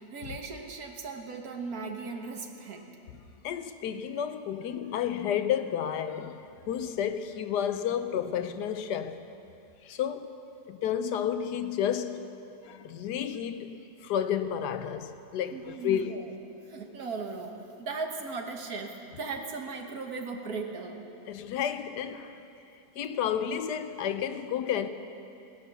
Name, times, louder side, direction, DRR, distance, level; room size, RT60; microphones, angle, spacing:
voice 1, 0.0-2.8 15.5-16.3 16.7-21.0, right 4 dB, 65° right, 1.7 m, -37 dB
voice 2, 3.4-9.2 9.8-10.3 10.7-12.3 12.6-16.3 21.3-22.4 23.0-24.9, left 9 dB, 80° left, 1.3 m, -31 dB
18.0 x 10.5 x 6.9 m
omnidirectional pair, 1.7 m